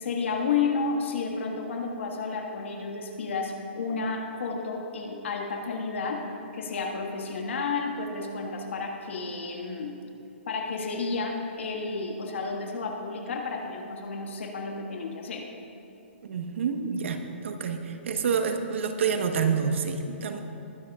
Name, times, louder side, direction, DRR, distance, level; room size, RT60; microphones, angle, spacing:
voice 1, 0.0-6.3 6.5-10.0 10.5-15.5, left 4 dB, 70° left, 1 dB, 1.8 m, -31 dB
voice 2, 16.2-20.4, right 6 dB, 70° right, 5 dB, 1.2 m, -28 dB
20.5 x 10.5 x 2.5 m, 2.8 s
hypercardioid pair, 155°, 7 cm